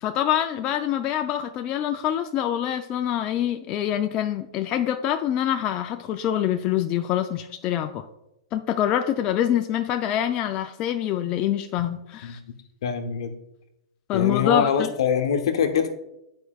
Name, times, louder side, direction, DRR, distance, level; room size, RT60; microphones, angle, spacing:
voice 1, 0.0-8.1 8.5-12.4 14.1-14.9, left 11 dB, 35° left, 6 dB, 0.3 m, -25 dB
voice 2, 12.8-13.3 14.1-15.9, left 7 dB, 70° left, 6 dB, 0.9 m, -23 dB
9.6 x 4.6 x 2.3 m, 0.87 s
hypercardioid pair, 130°, 3 cm